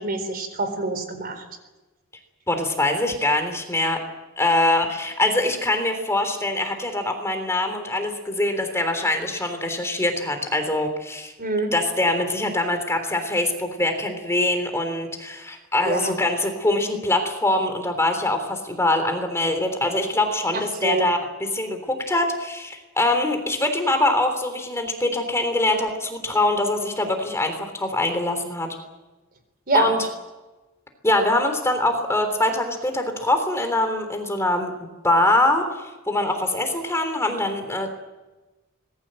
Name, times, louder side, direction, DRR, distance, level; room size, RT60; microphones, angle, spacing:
voice 1, 0.0-1.4 11.4-11.7 15.8-16.1 20.5-21.1 29.7-29.9, right 3 dB, 45° right, 8 dB, 4.2 m, -25 dB
voice 2, 2.5-4.0 4.4-11.3 11.7-28.7 29.7-30.0 31.0-37.9, left 1 dB, 15° left, 6 dB, 3.4 m, -23 dB
25.5 x 20.5 x 7.7 m, 1.2 s
head